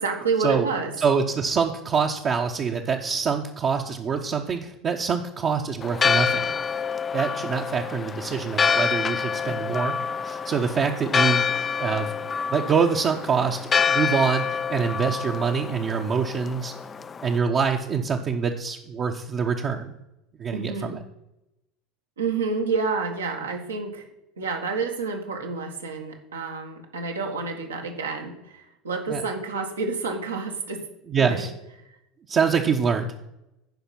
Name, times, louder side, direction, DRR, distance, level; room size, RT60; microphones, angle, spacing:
voice 1, 0.0-0.9 20.5-21.0 22.2-24.1 24.4-30.9 31.2-31.5, right 4 dB, 90° right, 2 dB, 1.5 m, -29 dB
voice 2, 1.0-6.6 7.1-9.9 10.2-11.4 11.8-12.1 12.5-13.6 13.9-16.7 17.2-20.0 20.4-21.0 29.1-29.2 31.1-31.5 32.3-33.1, right 6 dB, 40° right, 0 dB, 0.8 m, -25 dB
Church bell, 5.8-17.4, left 6 dB, 30° left, 0.4 m, -27 dB
10.5 x 5.0 x 5.9 m, 0.89 s
hypercardioid pair, 80°, 0 cm